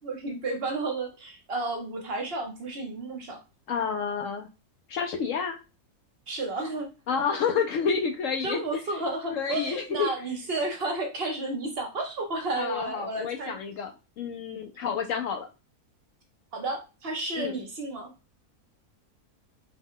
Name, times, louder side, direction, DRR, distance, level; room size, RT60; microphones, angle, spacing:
voice 1, 0.0-3.4 6.3-6.9 8.4-13.6 16.5-18.1, right 2 dB, 45° right, 2 dB, 1.0 m, -32 dB
voice 2, 3.7-4.5 4.9-5.6 7.1-8.6 9.3-10.1 12.6-13.9 14.2-15.5 17.4-17.5, left 6 dB, 70° left, 5 dB, 0.8 m, -29 dB
4.1 x 2.2 x 3.6 m, 0.30 s
omnidirectional pair, 1.7 m